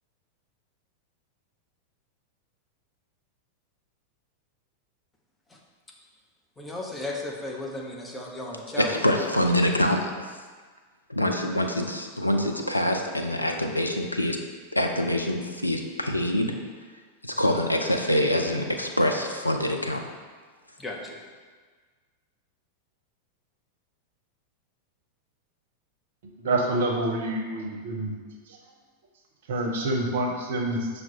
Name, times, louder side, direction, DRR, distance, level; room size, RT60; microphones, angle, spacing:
voice 1, 6.6-9.0 20.8-21.2, left 1 dB, 10° left, -1 dB, 0.5 m, -35 dB
voice 2, 8.8-10.0 11.1-14.4 14.7-16.5 17.2-20.0, left 1 dB, 85° left, 3 dB, 0.3 m, -25 dB
voice 3, 26.4-28.1 29.5-30.9, right 2 dB, 60° right, 1 dB, 0.5 m, -27 dB
5.7 x 2.0 x 2.9 m, 1.5 s
figure-of-eight pair, 90°, 0 cm